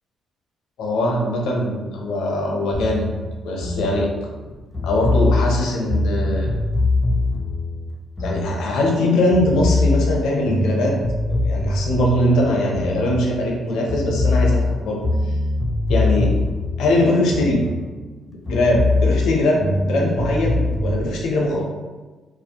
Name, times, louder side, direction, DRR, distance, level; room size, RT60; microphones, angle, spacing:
voice 1, 0.8-3.2 3.4-4.1 4.8-6.5 8.2-10.9 11.3-15.0 15.9-16.3 16.8-17.6 18.3-21.6, left 1 dB, 85° left, -1 dB, 0.5 m, -21 dB
sound 1, 2.7-9.0 9.3-13.6 13.9-18.2 18.5-21.0, left 2 dB, 25° left, 0.4 m, -23 dB
2.5 x 2.0 x 2.8 m, 1.3 s
cardioid pair, 90°, 0 cm